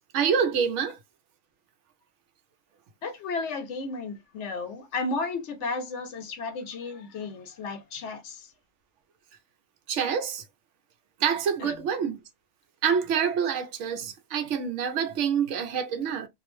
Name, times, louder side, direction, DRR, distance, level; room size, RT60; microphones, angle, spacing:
voice 1, 0.1-1.0 9.9-10.4 11.2-12.2 12.8-16.3, right 7 dB, 80° right, 0.9 m, -26 dB
voice 2, 3.0-8.5 11.6-11.7, left 3 dB, 75° left, 0.9 m, -33 dB
2.5 x 2.0 x 3.0 m
omnidirectional pair, 1.2 m